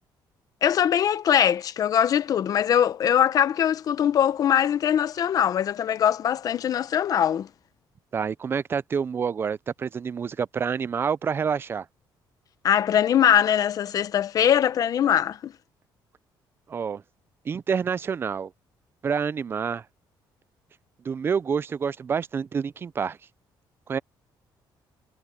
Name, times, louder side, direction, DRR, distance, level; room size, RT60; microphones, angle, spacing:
voice 1, 0.6-7.5 12.6-15.5, left 9 dB, 45° left, 0.8 m, -22 dB
voice 2, 8.1-11.9 16.7-17.0 17.5-18.5 19.0-19.8 21.0-23.2 23.9-24.0, right 6 dB, 30° right, 0.4 m, -27 dB
cardioid pair, 155°, 8 cm